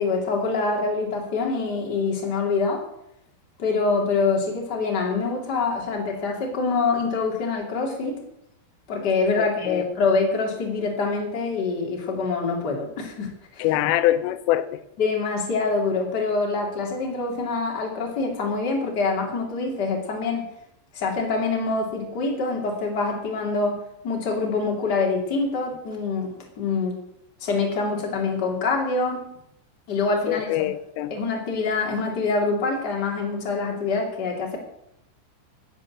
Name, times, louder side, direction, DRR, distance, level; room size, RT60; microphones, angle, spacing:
voice 1, 0.0-2.8 3.6-8.2 8.9-13.7 15.0-20.4 20.9-26.9 27.4-29.2 29.9-30.7 31.1-34.6, left 4 dB, 25° left, 0 dB, 2.4 m, -25 dB
voice 2, 9.4-9.9 13.6-14.8 30.3-31.1, left 13 dB, 90° left, 12 dB, 3.4 m, -24 dB
14.0 x 7.8 x 7.3 m, 0.78 s
omnidirectional pair, 5.6 m